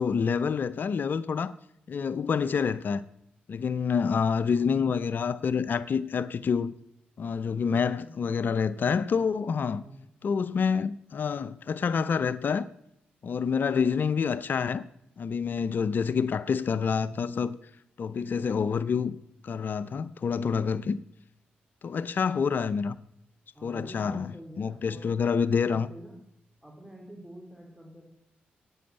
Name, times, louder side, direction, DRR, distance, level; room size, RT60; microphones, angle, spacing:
voice 1, 0.0-1.5 1.9-3.0 3.5-6.7 7.2-9.8 10.2-12.7 13.2-14.8 15.2-17.6 18.0-19.2 19.4-21.0 21.8-22.9 23.6-24.3 24.6-25.9, left 6 dB, 55° left, 0.5 m, -27 dB
voice 2, 4.5-4.9 7.4-8.1 9.7-10.1 23.5-25.2 25.6-26.2 26.6-28.0, right 1 dB, 5° right, 3.4 m, -47 dB
11.0 x 8.6 x 8.7 m
supercardioid pair, 60°, 4 cm